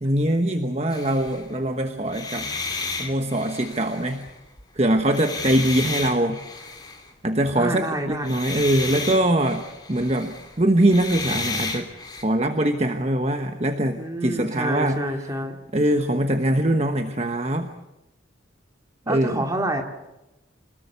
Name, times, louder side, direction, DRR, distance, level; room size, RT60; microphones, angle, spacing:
voice 1, 0.0-2.5 3.0-4.2 4.7-6.4 7.2-9.6 9.9-11.9 12.2-15.0 15.7-17.7 19.1-19.4, right 1 dB, 35° right, 6 dB, 1.1 m, -22 dB
sound 1, 0.9-1.5 2.0-4.6 5.0-7.1 8.1-12.2, left 4 dB, 20° left, 3.1 m, -33 dB
voice 2, 7.6-8.3 14.0-15.6 19.1-19.8, right 1 dB, 15° right, 3 dB, 2.4 m, -28 dB
26.5 x 20.0 x 6.9 m, 0.98 s
head